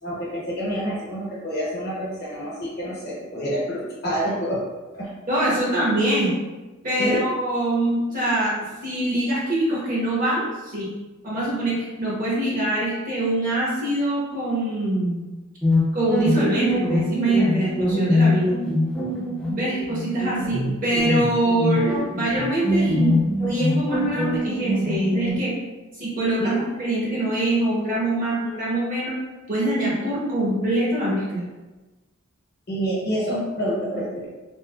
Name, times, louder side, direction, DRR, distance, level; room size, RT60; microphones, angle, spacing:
voice 1, 0.0-4.7 4.9-5.1 7.0-7.2 26.4-26.6 32.7-34.3, equal, 50° left, -6 dB, 1.1 m, -27 dB
voice 2, 5.3-6.3 6.8-8.5 8.8-10.9 11.2-15.2 15.9-18.5 19.5-25.5 26.0-29.2 29.5-31.4, right 1 dB, 40° right, -7 dB, 1.0 m, -24 dB
sound 1, 15.6-25.3, left 1 dB, 5° left, 0.6 m, -23 dB
3.3 x 2.6 x 2.2 m, 1.2 s
head